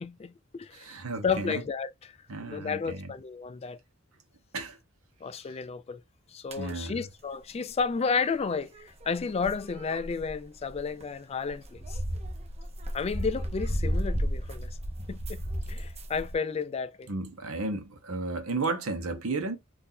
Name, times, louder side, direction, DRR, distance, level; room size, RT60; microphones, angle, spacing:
voice 1, 0.0-2.2 2.4-3.8 5.2-6.0 6.3-12.0 12.9-14.7 15.1-15.4 15.7-17.1, left 5 dB, 30° left, 0.3 m, -32 dB
voice 2, 0.7-1.6 2.3-3.1 4.5-4.8 6.6-7.0 17.1-19.6, right 3 dB, 80° right, 1.0 m, -33 dB
sound 1, 6.5-6.7 8.1-11.0 11.5-16.3, equal, 30° right, 0.7 m, -34 dB
3.9 x 2.6 x 2.7 m
head